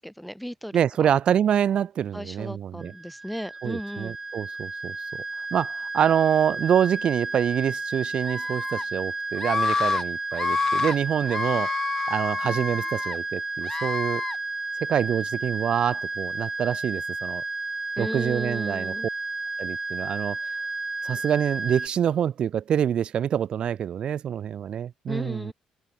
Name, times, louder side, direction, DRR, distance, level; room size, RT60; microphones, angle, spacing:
voice 1, 0.0-1.1 2.1-4.2 18.0-19.1 25.1-25.5, equal, ahead, 3.3 m, -35 dB
voice 2, 0.7-2.9 3.6-5.0 5.5-11.7 12.1-14.2 14.8-17.4 18.0-18.9 19.6-20.4 21.0-25.5, right 9 dB, 50° right, 1.8 m, -26 dB
sound 1, 2.8-21.9, right 3 dB, 15° right, 1.1 m, -32 dB
Screaming, 8.3-8.8 9.4-10.0 10.3-11.0 11.3-13.2 13.6-14.4, left 4 dB, 25° left, 1.1 m, -28 dB
open air
cardioid pair, 120°, 2 cm